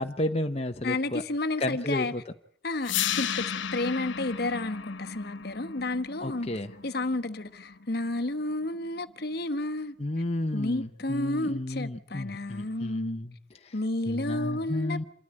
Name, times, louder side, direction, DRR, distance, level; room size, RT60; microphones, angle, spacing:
voice 1, 0.0-1.2 1.6-2.2 6.2-6.7 10.0-13.3 13.6-13.7 14.1-15.0, left 1 dB, 35° left, 0.9 m, -32 dB
voice 2, 0.8-2.1 2.6-3.4 3.7-6.5 6.8-9.9 10.5-13.2 13.7-15.0, left 2 dB, 55° left, 1.2 m, -31 dB
sound 1, 2.8-8.9, left 8 dB, 80° left, 0.9 m, -35 dB
27.5 x 13.5 x 10.0 m
head